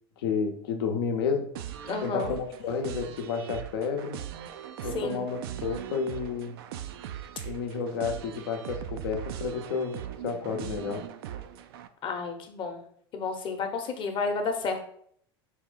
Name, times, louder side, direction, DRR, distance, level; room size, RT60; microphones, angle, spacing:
voice 1, 0.2-1.5 2.0-4.2 4.8-6.6 7.4-11.1, left 5 dB, 75° left, 5 dB, 0.7 m, -31 dB
sound 1, 1.5-11.9, right 11 dB, 75° right, 0.4 m, -40 dB
voice 2, 1.8-2.3 4.9-5.2 12.0-12.8 13.1-14.8, left 4 dB, 40° left, 5 dB, 0.8 m, -31 dB
4.3 x 2.4 x 3.7 m, 0.63 s
hypercardioid pair, 90°, 13 cm